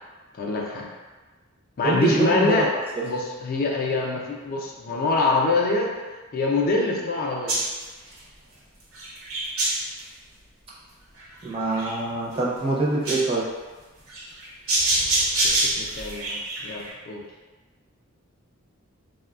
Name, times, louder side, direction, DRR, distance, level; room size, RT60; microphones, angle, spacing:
voice 1, 0.4-0.9 1.8-2.7 3.0-5.9 6.3-7.6 15.4-17.2, left 3 dB, 45° left, -1 dB, 0.3 m, -25 dB
voice 2, 1.8-2.6 11.4-13.5, right 3 dB, 25° right, -5 dB, 0.5 m, -24 dB
sound 1, 7.5-8.2 8.9-10.0 11.2-11.9 12.3-12.4 13.0-13.2 14.1-16.9, right 2 dB, 80° right, 0.8 m, -25 dB
3.1 x 2.1 x 2.3 m, 1.3 s
head